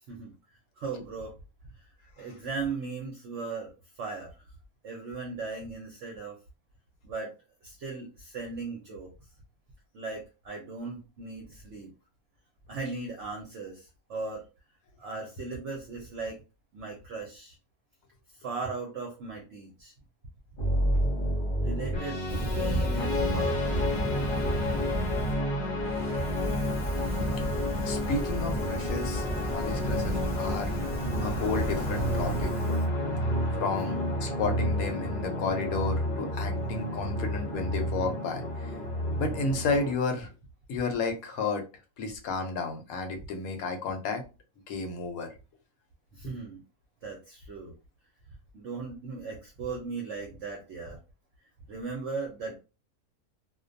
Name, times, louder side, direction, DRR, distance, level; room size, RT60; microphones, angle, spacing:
voice 1, 0.8-1.3 1.8-1.9 2.2-3.7 4.0-4.4 4.8-6.4 7.0-7.3 7.6-9.1 9.9-11.9 12.7-14.5 15.0-16.4 16.7-17.5 18.4-19.9 21.6-22.2 22.6-23.8 33.8-34.1 46.1-46.6 47.0-47.7 48.5-51.0 51.7-52.6, right 4 dB, 60° right, 0 dB, 0.8 m, -37 dB
sound 1, 20.6-39.9, equal, 45° left, 0.7 m, -30 dB
Fire, 22.2-25.4 25.8-32.8, right 1 dB, ahead, 0.7 m, -33 dB
voice 2, 27.8-30.7 31.2-32.8 33.5-33.9 34.2-38.7 39.2-40.3 40.7-41.6 42.0-44.2 44.7-45.3 46.2-46.3, left 4 dB, 75° left, 4 dB, 1.0 m, -32 dB
2.4 x 2.2 x 2.5 m, 0.31 s
omnidirectional pair, 1.6 m